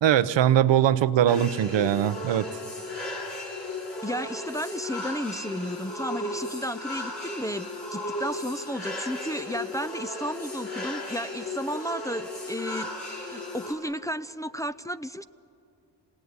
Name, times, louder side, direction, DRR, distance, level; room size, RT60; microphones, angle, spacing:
voice 1, 0.0-2.5, right 11 dB, 75° right, 13 dB, 0.8 m, -21 dB
sound 1, 1.3-13.7, left 1 dB, 65° left, 5.4 m, -35 dB
voice 2, 4.0-15.2, equal, 10° left, 10 dB, 0.5 m, -33 dB
25.0 x 18.5 x 9.5 m, 2.6 s
cardioid pair, 55°, 44 cm